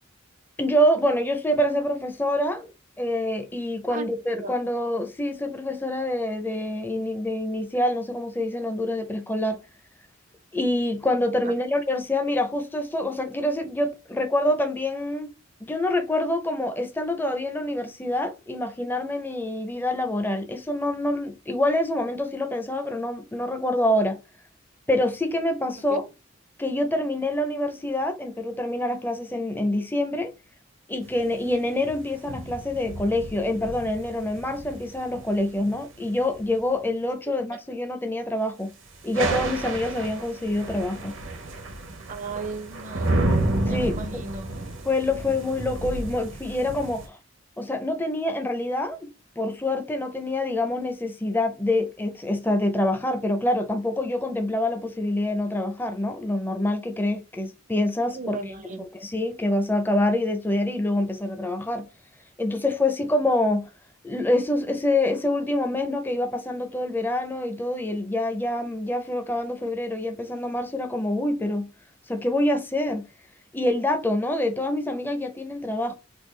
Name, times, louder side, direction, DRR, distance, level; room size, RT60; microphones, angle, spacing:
voice 1, 0.6-2.7 3.0-9.6 10.5-15.3 15.6-24.2 24.9-26.0 26.6-30.3 30.9-38.7 39.0-41.2 43.7-44.2 44.8-47.2 47.6-49.1 49.4-58.4 58.8-61.9 62.4-63.7 64.0-71.7 72.1-73.1 73.5-75.9, left 1 dB, 10° left, 0.5 m, -26 dB
sound 1, 31.0-36.5 38.9-47.1, right 2 dB, 70° right, 0.7 m, -31 dB
voice 2, 42.1-43.3 43.7-44.5 58.1-58.9, right 3 dB, 40° right, 0.5 m, -35 dB
3.5 x 2.3 x 3.2 m
head